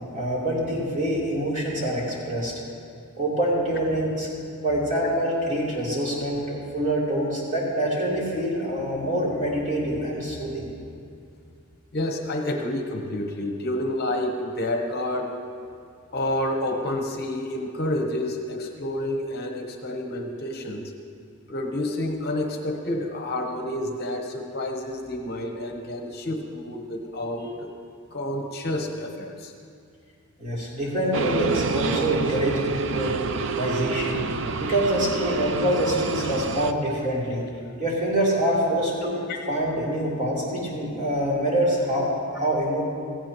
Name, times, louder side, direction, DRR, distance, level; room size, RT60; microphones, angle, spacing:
voice 1, 0.1-2.5 3.2-4.3 4.6-10.7 30.4-33.2 33.5-34.2 34.6-37.4 37.8-42.8, right 1 dB, 35° right, -6 dB, 3.3 m, -25 dB
voice 2, 11.9-15.4 16.1-20.9 21.5-27.7 28.1-29.5 39.3-39.4, left 1 dB, 50° left, 3 dB, 1.0 m, -29 dB
sound 1, 31.1-36.7, right 4 dB, 60° right, 0.5 m, -28 dB
16.5 x 15.5 x 3.0 m, 2.3 s
head